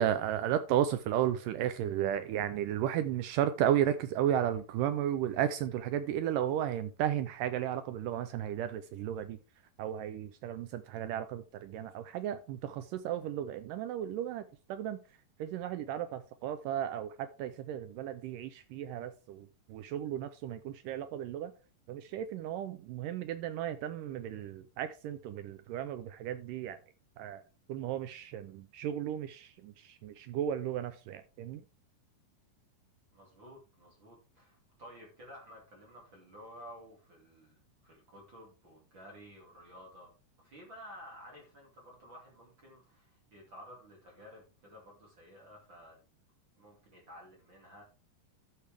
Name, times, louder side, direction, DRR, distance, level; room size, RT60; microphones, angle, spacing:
voice 1, 0.0-9.4 9.8-14.4 14.7-15.0 15.4-21.5 21.9-26.8 27.2-27.4 27.7-31.6, right 10 dB, 80° right, 2.1 m, -34 dB
voice 2, 33.1-40.1 40.4-46.2 46.6-47.8, equal, 35° right, 2.9 m, -53 dB
12.5 x 6.7 x 3.4 m
omnidirectional pair, 4.1 m